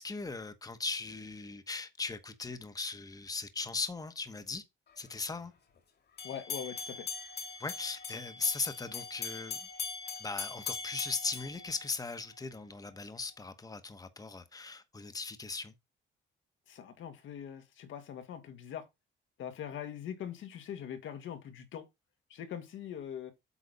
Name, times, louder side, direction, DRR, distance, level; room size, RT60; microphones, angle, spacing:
voice 1, 0.0-4.6 5.0-5.5 7.6-9.6 10.2-15.7, left 4 dB, 20° left, 1.1 m, -38 dB
voice 2, 6.2-7.1 16.7-18.8 19.4-21.8 22.3-23.3, left 9 dB, 75° left, 1.8 m, -42 dB
sound 1, 6.2-12.4, left 5 dB, 55° left, 2.2 m, -41 dB
8.3 x 4.1 x 5.3 m
cardioid pair, 90°, 20 cm